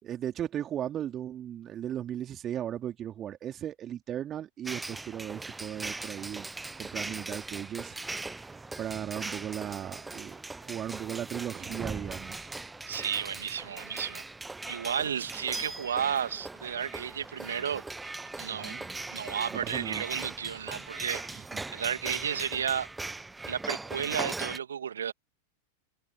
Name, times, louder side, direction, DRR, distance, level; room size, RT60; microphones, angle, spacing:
voice 1, 0.0-6.5 6.8-8.0 8.2-12.5 18.6-18.8 19.5-20.0 21.5-21.6, right 10 dB, 30° right, 2.8 m, -37 dB
sound 1, 4.6-24.6, right 3 dB, 10° right, 1.1 m, -39 dB
voice 2, 12.9-14.2 14.7-17.8 18.4-22.9 23.5-25.1, right 8 dB, 65° right, 2.6 m, -33 dB
figure-of-eight pair, 90°, 0 cm